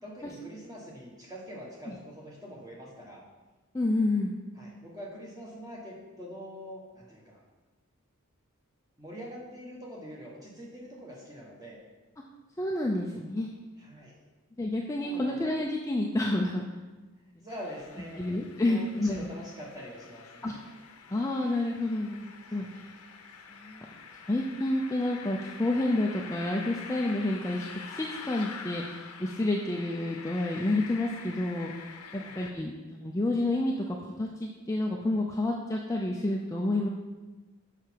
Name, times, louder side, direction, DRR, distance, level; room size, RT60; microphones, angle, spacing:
voice 1, 0.0-3.2 4.5-7.4 9.0-11.8 13.8-14.2 15.0-15.5 17.4-18.2 18.7-20.6 22.5-22.7 32.1-32.6, equal, 15° right, -4 dB, 1.5 m, -44 dB
voice 2, 3.7-4.3 12.6-13.5 14.6-16.6 18.2-19.3 20.4-20.5 21.1-22.7 23.5-23.9 24.3-31.9 32.1-36.9, left 2 dB, 15° left, -1 dB, 0.4 m, -29 dB
sound 1, 17.5-32.5, left 5 dB, 90° left, 0.8 m, -46 dB
6.6 x 5.7 x 4.5 m, 1.2 s
head